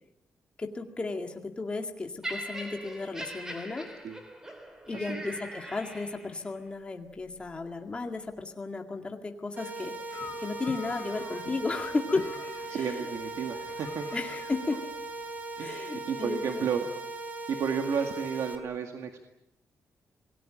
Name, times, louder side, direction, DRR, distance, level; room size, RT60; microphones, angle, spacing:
voice 1, 0.6-3.9 4.9-9.9 10.4-12.2 12.7-13.1 14.1-14.8 15.6-16.7, left 3 dB, 20° left, 3 dB, 2.0 m, -34 dB
Laughter, 2.2-6.5 7.3-7.5, right 1 dB, 10° right, 3.3 m, -41 dB
voice 2, 4.9-5.2 12.7-14.1 15.6-16.9 17.5-19.3, right 6 dB, 70° right, 4 dB, 2.0 m, -32 dB
sound 1, 9.6-18.6, right 2 dB, 30° right, 3.2 m, -39 dB
sound 2, 10.1-15.3, left 7 dB, 45° left, 0.9 m, -46 dB
27.0 x 20.0 x 8.8 m, 0.87 s
wide cardioid pair, 175°, 5 cm